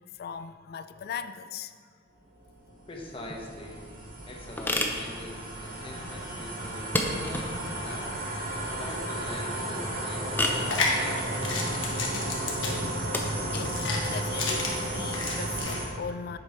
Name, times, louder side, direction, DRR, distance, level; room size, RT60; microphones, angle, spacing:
voice 1, 0.1-1.7 12.1-12.4 13.5-16.4, left 6 dB, 55° left, 0.3 m, -39 dB
sound 1, 2.4-15.9, right 1 dB, 50° right, 1.5 m, -33 dB
voice 2, 2.9-3.9 4.3-8.1 8.7-11.4, left 1 dB, 30° left, 1.0 m, -43 dB
sound 2, 3.2-15.6, left 1 dB, 10° left, 0.6 m, -35 dB
sound 3, 10.5-15.8, left 3 dB, 85° left, 1.2 m, -32 dB
8.0 x 5.3 x 4.3 m
head